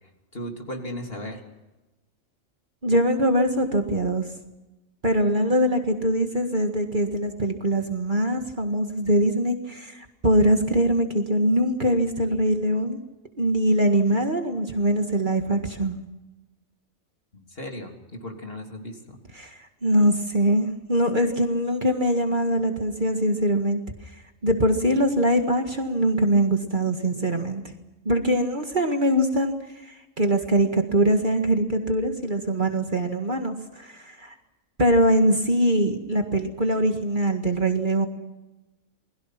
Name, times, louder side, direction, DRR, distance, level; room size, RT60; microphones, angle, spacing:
voice 1, 0.0-1.4 17.3-19.2, equal, 45° left, 2 dB, 3.5 m, -36 dB
voice 2, 2.8-4.3 5.0-13.0 13.4-16.0 19.4-23.8 24.4-27.6 28.1-34.3 34.8-38.1, right 1 dB, 35° right, 4 dB, 2.0 m, -22 dB
28.5 x 21.5 x 6.0 m, 1.1 s
omnidirectional pair, 1.4 m